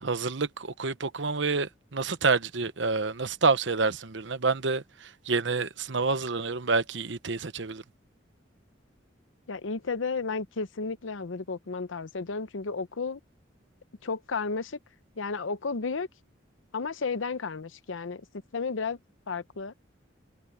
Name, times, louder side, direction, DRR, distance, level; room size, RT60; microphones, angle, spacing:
voice 1, 0.0-7.8, right 4 dB, 70° right, 1.0 m, -28 dB
voice 2, 9.5-13.2 14.0-14.8 15.2-16.1 16.7-18.2 18.5-19.0 19.3-19.7, left 4 dB, 90° left, 0.8 m, -32 dB
head